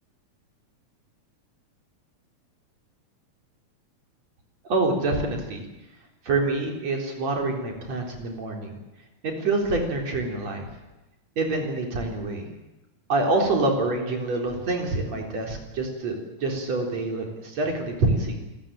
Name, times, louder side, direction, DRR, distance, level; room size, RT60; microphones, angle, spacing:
voice 1, 4.6-5.6 6.2-8.7 9.2-10.7 11.4-12.6 13.1-18.4, right 2 dB, 60° right, 2 dB, 5.0 m, -26 dB
27.5 x 14.5 x 9.0 m, 1.0 s
omnidirectional pair, 3.4 m